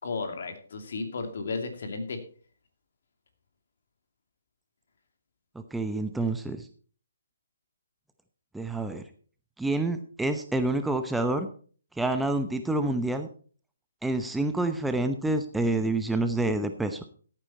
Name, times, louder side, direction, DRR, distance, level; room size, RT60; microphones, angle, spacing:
voice 1, 0.0-2.2, left 4 dB, 60° left, 6 dB, 2.6 m, -33 dB
voice 2, 5.7-6.7 8.5-9.0 9.6-11.5 12.0-13.3 14.0-17.0, right 2 dB, 5° right, 7 dB, 0.8 m, -28 dB
14.5 x 8.9 x 4.2 m, 0.43 s
figure-of-eight pair, 140°, 0 cm